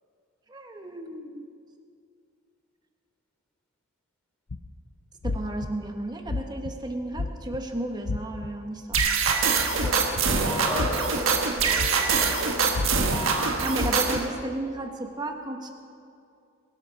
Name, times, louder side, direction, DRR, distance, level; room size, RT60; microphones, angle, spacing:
voice 1, 0.5-1.4 5.2-9.0 13.6-15.7, right 1 dB, 20° right, 4 dB, 1.1 m, -33 dB
sound 1, 4.5-4.7 5.2-5.7 6.3-6.7 7.1-7.6 8.0-8.5 8.9-9.4 9.8-10.4 10.8-11.2 11.8-12.2 12.7-13.2 13.8-14.2, left 3 dB, 80° left, 0.7 m, -30 dB
sound 2, 8.9-14.3, right 5 dB, 70° right, 1.5 m, -24 dB
voice 2, 9.8-12.6, equal, 5° left, -3 dB, 3.3 m, -35 dB
21.5 x 12.5 x 4.1 m, 2.5 s
head